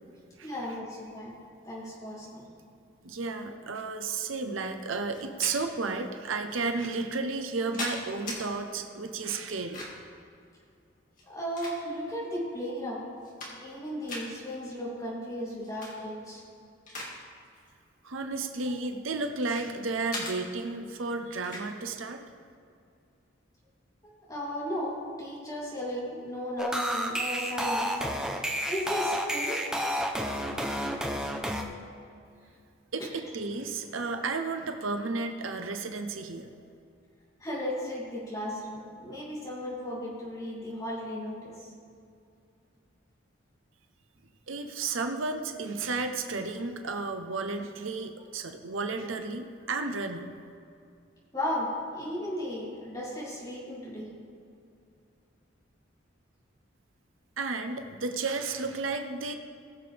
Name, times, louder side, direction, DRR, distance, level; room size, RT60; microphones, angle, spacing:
voice 1, 0.4-1.4 1.7-2.4 11.3-13.0 13.6-16.4 24.3-24.9 25.2-27.9 28.7-29.6 37.4-41.5 51.3-51.7 51.9-54.1, equal, 20° left, -7 dB, 2.9 m, -35 dB
voice 2, 3.0-9.8 18.0-22.2 32.9-36.5 44.5-50.4 57.4-59.3, right 3 dB, 80° right, 6 dB, 0.8 m, -33 dB
sound 1, 5.1-5.6 6.5-6.6 7.3-8.4 9.5-10.1 11.1-12.2 12.7-12.8 13.1-13.8 14.1-14.3 15.6-15.9 16.4-17.2 17.4-17.7 18.5-19.6 20.1-20.4 21.4-21.7, left 2 dB, 40° left, 2.2 m, -39 dB
sound 2, 26.6-31.6, equal, 5° right, 0.7 m, -30 dB
20.0 x 6.8 x 3.4 m, 2.4 s
head